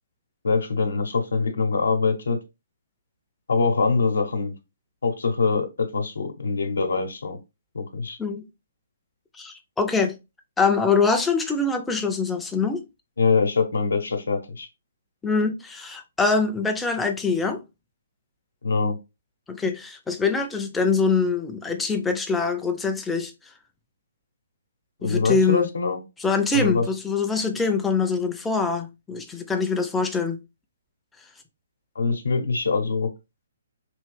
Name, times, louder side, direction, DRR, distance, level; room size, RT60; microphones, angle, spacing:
voice 1, 0.4-2.4 3.5-4.5 5.0-7.4 7.7-8.2 13.2-14.7 18.6-19.0 25.0-26.0 26.5-26.9 31.9-33.1, left 4 dB, 90° left, 0.8 m, -23 dB
voice 2, 9.3-10.2 10.6-12.8 15.2-17.6 19.5-23.3 25.0-25.7 26.2-30.4, left 4 dB, 5° left, 0.4 m, -24 dB
3.0 x 2.6 x 3.2 m
hypercardioid pair, 165°, 0 cm